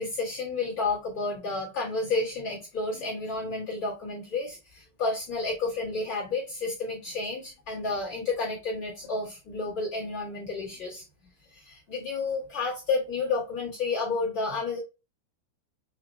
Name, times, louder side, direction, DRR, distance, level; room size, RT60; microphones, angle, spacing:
voice 1, 0.0-11.0 11.5-14.8, left 3 dB, 65° left, -9 dB, 1.1 m, -31 dB
7.9 x 3.0 x 2.2 m, 0.28 s
omnidirectional pair, 5.7 m